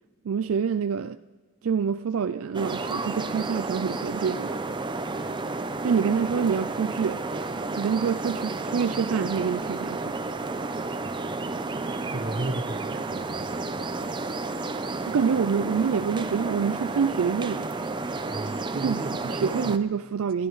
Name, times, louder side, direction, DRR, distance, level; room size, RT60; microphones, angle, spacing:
voice 1, 0.2-1.2 1.6-4.6 5.8-7.2 7.8-10.2 15.0-17.7 18.8-19.0 19.2-20.5, right 6 dB, 75° right, 11 dB, 0.4 m, -26 dB
sound 1, 2.5-19.8, right 3 dB, 20° right, 0.6 m, -31 dB
voice 2, 11.0-11.4 12.1-14.1 18.3-19.8, right 2 dB, 45° right, 7 dB, 1.0 m, -36 dB
27.5 x 12.5 x 3.2 m, 1.3 s
head